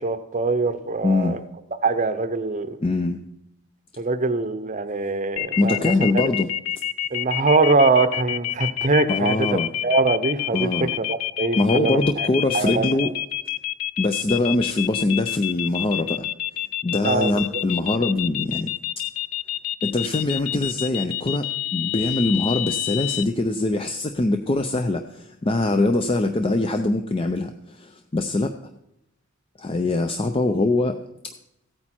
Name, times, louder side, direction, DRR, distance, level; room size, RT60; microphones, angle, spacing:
voice 1, 0.0-1.4 1.8-2.8 4.0-6.2 7.1-12.3 12.5-13.1 17.0-17.6, right 3 dB, 35° right, 10 dB, 0.7 m, -23 dB
voice 2, 1.0-1.4 2.8-3.2 5.6-6.5 9.1-9.7 10.5-10.9 11.6-13.1 14.0-16.3 16.8-18.7 19.8-28.5 29.6-31.0, left 2 dB, 25° left, 7 dB, 0.5 m, -23 dB
sound 1, 5.4-23.2, left 14 dB, 80° left, 0.4 m, -28 dB
15.5 x 8.8 x 4.3 m, 0.82 s
head